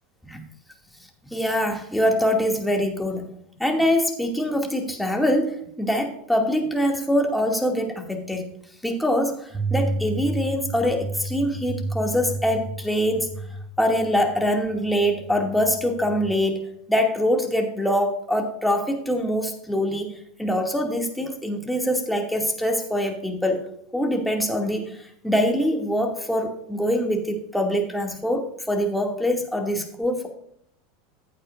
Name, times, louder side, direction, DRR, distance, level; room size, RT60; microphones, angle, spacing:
voice 1, 1.3-3.3 3.6-8.5 8.8-13.3 13.8-20.1 20.4-23.7 23.9-30.3, equal, 5° left, 2 dB, 2.4 m, -24 dB
sound 1, 9.5-16.3, right 2 dB, 20° right, 1.8 m, -32 dB
15.0 x 8.5 x 2.6 m, 0.69 s
hypercardioid pair, 85°, 0 cm